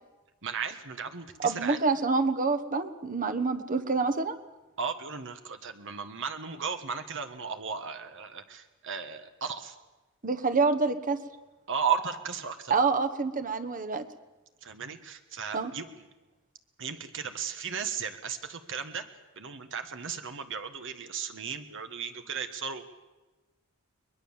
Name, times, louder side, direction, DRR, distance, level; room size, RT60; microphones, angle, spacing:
voice 1, 0.4-1.8 4.8-9.7 11.7-12.7 14.6-15.9 16.8-19.1 19.3-22.8, right 6 dB, 60° right, 8 dB, 1.5 m, -35 dB
voice 2, 1.4-4.3 10.2-11.2 12.7-14.1 15.5-15.7, right 4 dB, 40° right, 9 dB, 1.3 m, -27 dB
21.5 x 21.0 x 7.3 m, 1.1 s
head